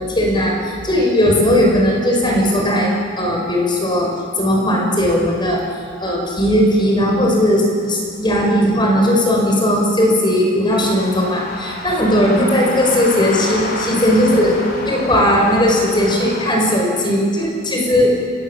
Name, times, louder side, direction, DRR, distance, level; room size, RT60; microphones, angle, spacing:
voice 1, 0.0-5.6 6.0-18.2, equal, 25° left, 0 dB, 5.6 m, -17 dB
sound 1, 10.7-16.5, left 2 dB, 55° left, 4.3 m, -29 dB
30.0 x 20.5 x 7.4 m, 2.2 s
head